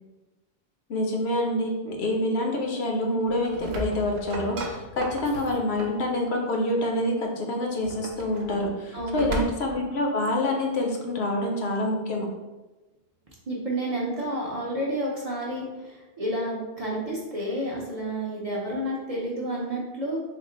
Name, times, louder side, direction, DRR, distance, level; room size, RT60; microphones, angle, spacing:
voice 1, 0.9-12.3, left 1 dB, 70° left, 1 dB, 0.9 m, -27 dB
sound 1, 3.2-6.1 7.7-9.8, right 1 dB, 75° right, 0.8 m, -36 dB
voice 2, 8.9-9.4 13.5-20.2, right 1 dB, 45° right, -4 dB, 0.6 m, -30 dB
3.6 x 2.1 x 3.7 m, 1.1 s
omnidirectional pair, 1.1 m